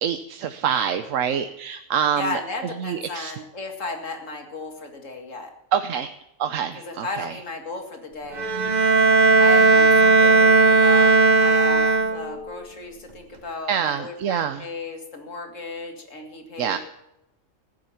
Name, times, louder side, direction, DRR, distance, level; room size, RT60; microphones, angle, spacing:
voice 1, 0.0-2.4 2.8-3.3 5.7-6.1 6.4-7.4 13.7-14.7 16.6-16.8, right 8 dB, 75° right, 9 dB, 1.1 m, -26 dB
voice 2, 2.1-5.5 6.8-8.5 9.4-11.1 11.4-16.8, left 3 dB, 70° left, 4 dB, 2.5 m, -34 dB
Bowed string instrument, 8.4-12.5, right 3 dB, 35° right, 1.1 m, -16 dB
14.5 x 11.0 x 7.1 m, 0.86 s
omnidirectional pair, 1.4 m